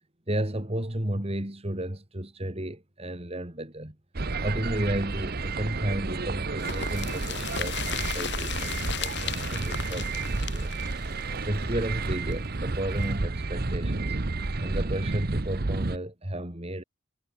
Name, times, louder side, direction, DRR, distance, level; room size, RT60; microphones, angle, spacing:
voice 1, 0.3-4.0 4.4-10.7 11.1-14.2 14.6-16.8, right 1 dB, 30° right, 2.4 m, -33 dB
sound 1, 4.1-16.0, right 3 dB, 45° right, 0.9 m, -31 dB
sound 2, 6.6-12.3 12.6-12.7 13.0-13.1, left 8 dB, 55° left, 5.0 m, -36 dB
head